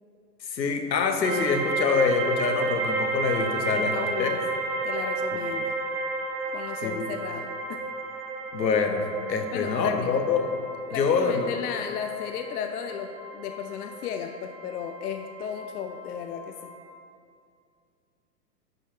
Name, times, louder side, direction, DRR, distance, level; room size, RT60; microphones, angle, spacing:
voice 1, 0.4-4.3 6.8-7.0 8.5-9.0 9.3-10.5 10.9-11.5, left 5 dB, 85° left, 5 dB, 1.0 m, -25 dB
sound 1, 1.2-16.9, right 3 dB, 35° right, 0.9 m, -32 dB
voice 2, 3.7-5.8 6.5-7.8 9.5-10.2 10.9-16.7, left 8 dB, 65° left, 6 dB, 0.6 m, -35 dB
10.0 x 5.5 x 3.0 m, 2.3 s
hypercardioid pair, 110°, 49 cm